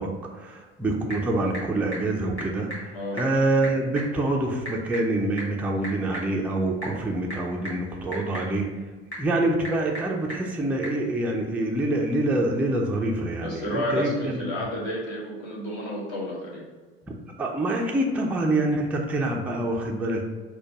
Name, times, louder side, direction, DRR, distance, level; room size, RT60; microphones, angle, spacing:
voice 1, 0.0-8.7 9.2-14.4 17.4-20.2, right 2 dB, 5° right, 0 dB, 0.4 m, -26 dB
Typing / Telephone, 0.5-11.0, equal, 90° left, 1.3 m, -40 dB
voice 2, 13.4-16.6, left 1 dB, 50° left, -4 dB, 1.4 m, -31 dB
4.4 x 2.2 x 4.5 m, 1.4 s
figure-of-eight pair, 65°, 32 cm